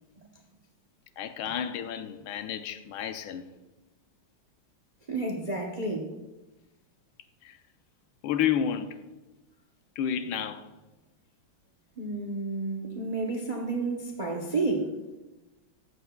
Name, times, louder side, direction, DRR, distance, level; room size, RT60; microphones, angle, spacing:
voice 1, 1.2-3.5 7.4-7.6 8.2-9.0 10.0-10.6, left 9 dB, 90° left, 1.5 m, -31 dB
voice 2, 5.1-6.1 12.0-14.9, right 3 dB, 70° right, 0.4 m, -31 dB
13.0 x 7.7 x 2.3 m
omnidirectional pair, 2.2 m